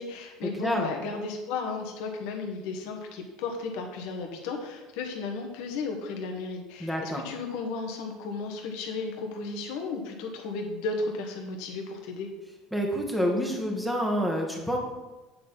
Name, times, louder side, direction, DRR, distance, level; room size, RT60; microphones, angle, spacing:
voice 1, 0.0-12.3, left 4 dB, 75° left, 3 dB, 1.3 m, -34 dB
voice 2, 0.6-0.9 6.8-7.2 12.7-14.8, equal, ahead, 0 dB, 1.4 m, -28 dB
8.5 x 4.2 x 5.5 m, 1.1 s
supercardioid pair, 115°, 0 cm